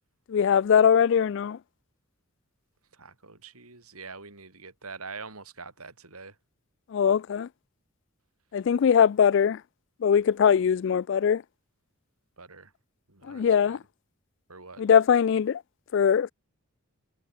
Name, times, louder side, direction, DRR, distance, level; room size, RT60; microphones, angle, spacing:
voice 1, 0.3-1.6 6.9-7.5 8.5-9.6 10.0-11.4 13.3-13.8 14.8-15.6 15.9-16.3, left 7 dB, 55° left, 0.3 m, -21 dB
voice 2, 2.9-6.4 12.4-12.7 13.1-13.8 14.5-14.8, right 4 dB, 90° right, 5.3 m, -44 dB
head